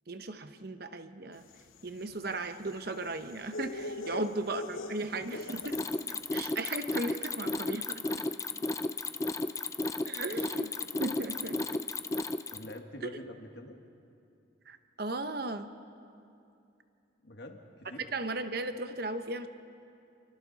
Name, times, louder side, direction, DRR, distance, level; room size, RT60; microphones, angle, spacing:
voice 1, 0.1-1.4 1.8-5.6 6.3-8.0 10.0-11.8 14.7-15.7 18.1-19.5, right 2 dB, 50° right, 9 dB, 0.9 m, -36 dB
sound 1, 1.5-6.0, left 2 dB, 90° left, 1.0 m, -43 dB
voice 2, 5.0-5.8 9.0-9.1 10.3-10.4 12.5-13.8 17.2-18.1, left 1 dB, 55° left, 4 dB, 1.7 m, -46 dB
Mechanisms, 5.3-12.8, left 2 dB, 15° left, 0.4 m, -34 dB
29.5 x 24.5 x 4.1 m, 2.6 s
head